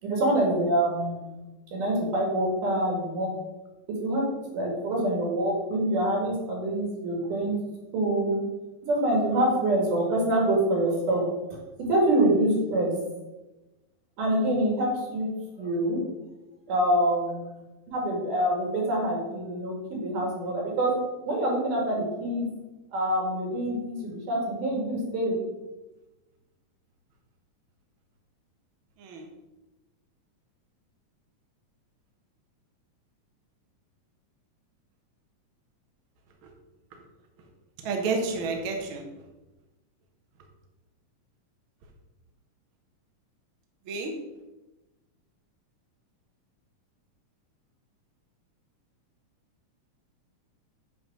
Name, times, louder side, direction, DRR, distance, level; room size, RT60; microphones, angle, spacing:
voice 1, 0.0-1.4 1.7-3.3 3.9-4.2 4.5-7.5 7.9-8.4 8.8-11.2 11.8-12.9 14.2-15.3 15.6-16.0 16.7-17.6 17.9-20.9 21.3-22.5 22.9-25.4, right 1 dB, 80° right, -2 dB, 3.8 m, -26 dB
voice 2, 37.8-39.0 43.9-44.1, right 4 dB, 55° right, 2 dB, 1.5 m, -29 dB
8.1 x 4.2 x 6.1 m, 1.1 s
omnidirectional pair, 3.6 m